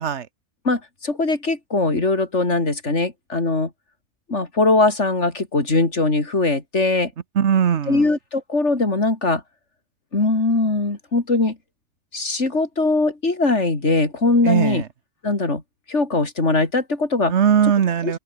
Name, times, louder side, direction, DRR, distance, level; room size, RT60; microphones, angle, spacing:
voice 1, 0.6-3.7 4.3-7.1 7.9-9.4 10.1-11.6 12.1-14.8 15.2-15.6 15.9-17.3 18.0-18.2, left 3 dB, 75° left, 3.9 m, -21 dB
voice 2, 7.4-8.1 14.4-14.8 17.3-18.2, right 8 dB, 75° right, 1.3 m, -19 dB
open air
omnidirectional pair, 1.2 m